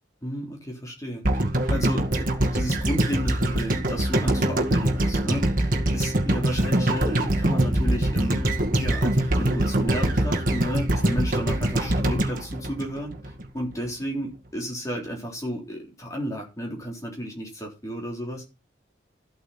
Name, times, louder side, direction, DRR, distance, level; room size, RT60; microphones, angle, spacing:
voice 1, 0.2-18.4, equal, 15° left, 0 dB, 3.7 m, -33 dB
sound 1, 1.2-13.5 13.7-13.8, right 1 dB, 45° right, 2.0 m, -23 dB
13.5 x 8.7 x 4.3 m, 0.29 s
head